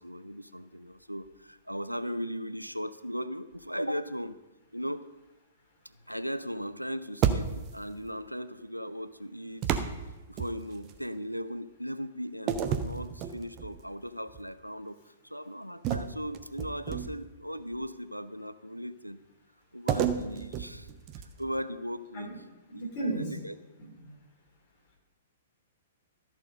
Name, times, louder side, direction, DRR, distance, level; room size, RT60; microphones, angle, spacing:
voice 1, 0.0-4.4 4.7-5.1 6.1-9.8 10.3-19.2 19.7-20.9 21.4-22.3 22.7-23.5, equal, 90° right, 12 dB, 0.4 m, -38 dB
sound 1, 7.2-7.9 9.6-11.0 12.5-13.8 14.3-14.5 15.8-17.4 19.9-21.5, right 8 dB, 30° right, 0.6 m, -31 dB
voice 2, 22.7-23.4 23.8-24.1, right 2 dB, 35° left, -2 dB, 3.1 m, -35 dB
13.0 x 4.5 x 5.2 m, 1.1 s
figure-of-eight pair, 110°, 0 cm